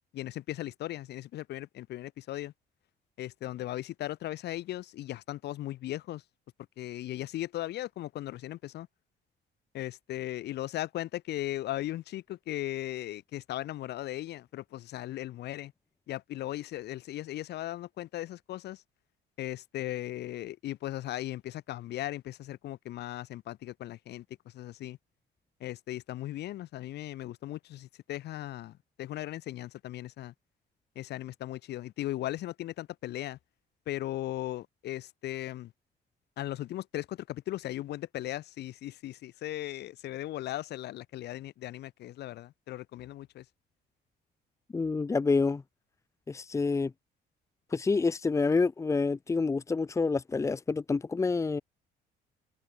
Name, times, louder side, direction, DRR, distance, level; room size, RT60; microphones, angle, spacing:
voice 1, 0.1-2.5 3.2-6.2 6.8-8.9 9.7-15.7 16.1-18.8 19.4-25.0 25.6-30.3 31.0-33.4 33.9-35.7 36.4-43.4, left 14 dB, 65° left, 7.8 m, -37 dB
voice 2, 44.7-45.6 46.3-46.9 47.7-51.6, left 4 dB, 15° left, 2.0 m, -28 dB
cardioid pair, 180°, 19 cm